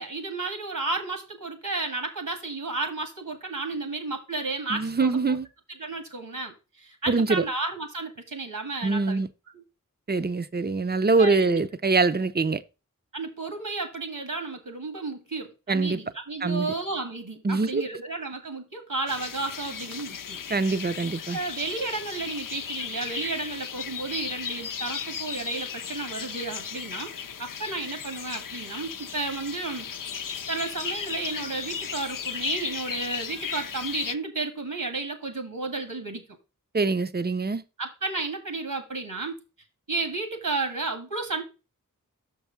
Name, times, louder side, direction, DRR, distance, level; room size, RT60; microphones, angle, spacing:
voice 1, 0.0-5.2 5.8-9.2 9.5-9.6 11.2-11.6 13.1-20.4 21.3-27.1 27.4-29.9 30.5-36.2 37.8-39.4 39.9-41.4, right 3 dB, 75° right, 1.8 m, -32 dB
voice 2, 4.7-5.5 7.1-7.4 8.8-9.3 10.1-12.6 15.7-16.0 16.4-16.7 17.4-17.8 20.5-21.4 36.7-37.6, right 3 dB, 30° right, 0.6 m, -24 dB
sound 1, 19.1-34.1, left 7 dB, 70° left, 0.5 m, -35 dB
6.4 x 4.7 x 5.7 m
wide cardioid pair, 45°, 33 cm